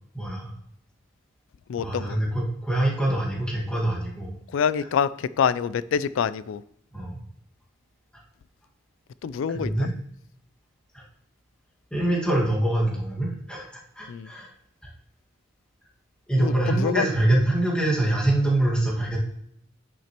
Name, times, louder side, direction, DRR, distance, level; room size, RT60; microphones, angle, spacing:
voice 1, 0.1-0.5 1.8-4.3 6.9-7.2 9.5-9.9 10.9-11.0 11.9-14.5 16.3-19.2, right 1 dB, 5° left, -4 dB, 1.8 m, -24 dB
voice 2, 1.7-2.2 4.5-6.6 9.2-9.9 14.1-14.3 16.4-17.0, left 7 dB, 75° left, 17 dB, 0.3 m, -26 dB
10.0 x 6.1 x 3.0 m, 0.72 s
head